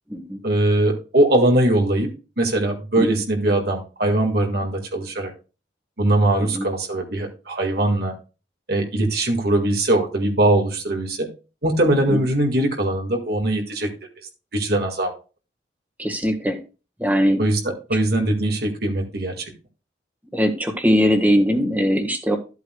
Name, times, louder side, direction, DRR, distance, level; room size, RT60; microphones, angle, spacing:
voice 1, 0.4-2.1 2.4-5.3 6.0-8.1 8.7-11.3 11.6-13.9 14.5-15.1 17.4-19.5, right 1 dB, 60° right, 2 dB, 1.9 m, -21 dB
voice 2, 16.0-16.6 17.0-17.4 20.3-22.4, equal, 10° right, 4 dB, 1.5 m, -20 dB
13.0 x 8.2 x 2.3 m, 0.32 s
head